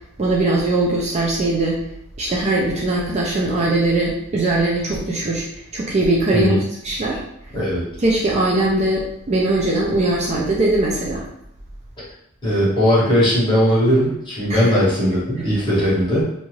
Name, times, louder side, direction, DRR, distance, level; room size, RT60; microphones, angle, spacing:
voice 1, 0.2-1.8 2.2-5.5 5.7-6.5 6.8-7.2 8.0-11.2 14.5-14.7, right 2 dB, 30° right, -3 dB, 0.4 m, -20 dB
voice 2, 12.4-16.2, equal, 20° left, -8 dB, 1.1 m, -18 dB
2.6 x 2.3 x 3.1 m, 0.77 s
head